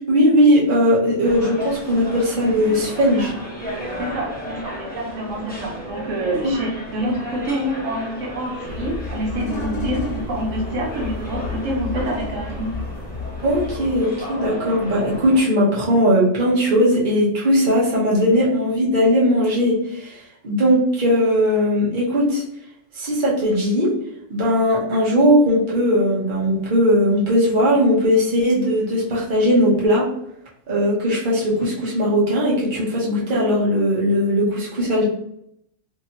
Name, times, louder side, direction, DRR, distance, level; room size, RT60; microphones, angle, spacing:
voice 1, 0.1-3.3 6.4-6.5 13.4-22.4 23.0-23.9 24.3-30.1 30.7-35.0, equal, 45° right, -5 dB, 1.0 m, -18 dB
sound 1, 1.2-15.4, equal, 10° left, 0.5 m, -34 dB
voice 2, 4.0-12.7, right 1 dB, 80° right, -1 dB, 1.1 m, -27 dB
sound 2, 8.6-14.0, left 4 dB, 80° left, 1.0 m, -31 dB
2.9 x 2.7 x 2.8 m, 0.75 s
omnidirectional pair, 1.3 m